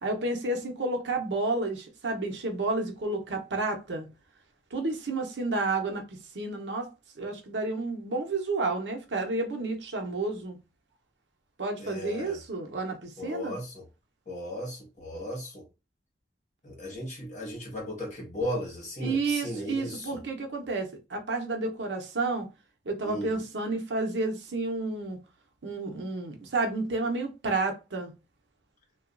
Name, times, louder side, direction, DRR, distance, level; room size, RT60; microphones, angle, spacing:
voice 1, 0.0-4.1 4.7-6.9 7.2-10.6 11.6-13.6 19.0-22.5 22.9-25.2 25.6-28.1, right 3 dB, 90° right, 0.8 m, -31 dB
voice 2, 11.8-12.4 13.2-13.9 14.3-15.6 16.6-20.2 23.0-23.4, equal, 45° left, 1.4 m, -36 dB
3.0 x 2.4 x 2.4 m
head